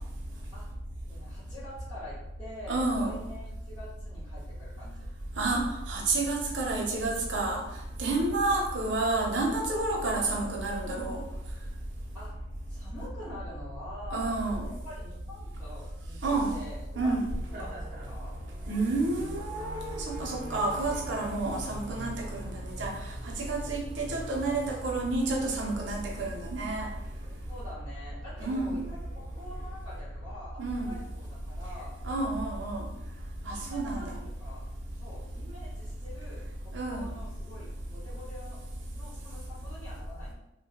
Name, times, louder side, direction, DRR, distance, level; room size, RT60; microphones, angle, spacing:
voice 1, 1.1-5.1 12.1-12.4 12.7-17.1 17.5-18.3 21.3-21.6 27.5-31.9 33.5-34.7 35.0-38.6 38.9-40.3, left 1 dB, 15° left, -16 dB, 1.4 m, -46 dB
voice 2, 2.7-3.2 5.4-7.6 8.0-11.2 14.1-14.7 16.2-16.5 17.0-17.2 18.7-26.9 28.4-28.8 30.6-31.0 32.0-32.9 33.4-34.2 36.7-37.1, right 2 dB, 90° right, -1 dB, 0.6 m, -30 dB
sound 1, 17.2-30.4, right 1 dB, 50° right, 0.6 m, -47 dB
2.7 x 2.2 x 2.9 m, 0.89 s
head